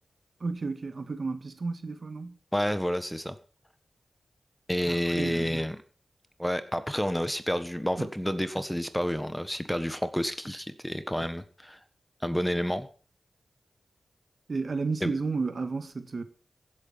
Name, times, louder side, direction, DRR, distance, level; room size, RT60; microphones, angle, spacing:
voice 1, 0.4-2.4 4.9-5.6 8.0-8.1 14.5-16.2, right 4 dB, 60° right, 1.8 m, -32 dB
voice 2, 2.5-3.3 4.7-5.8 6.4-11.8 12.2-12.9 15.0-15.1, equal, 5° left, 1.4 m, -29 dB
15.5 x 8.8 x 5.7 m
cardioid pair, 55°, 0 cm